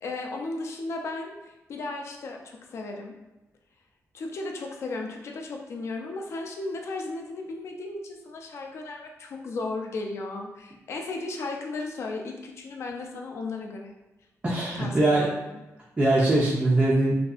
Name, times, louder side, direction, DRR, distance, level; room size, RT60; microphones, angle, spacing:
voice 1, 0.0-3.1 4.1-13.9 14.7-15.6, left 3 dB, 50° left, 2 dB, 0.4 m, -35 dB
voice 2, 14.4-15.3 16.0-17.2, right 2 dB, 20° right, -4 dB, 0.3 m, -22 dB
2.6 x 2.3 x 2.3 m, 1.0 s
wide cardioid pair, 165°, 6 cm